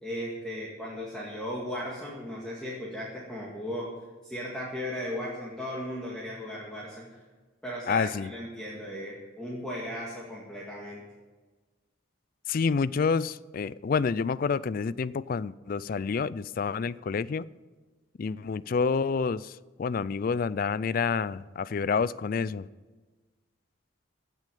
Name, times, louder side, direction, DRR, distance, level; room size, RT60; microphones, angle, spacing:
voice 1, 0.0-3.9 4.2-7.2 7.6-11.0, equal, 5° left, -5 dB, 2.0 m, -36 dB
voice 2, 7.9-8.3 12.5-17.4 18.2-19.5 19.8-22.6, left 5 dB, 45° left, 19 dB, 0.3 m, -28 dB
15.5 x 6.4 x 8.5 m, 1.3 s
head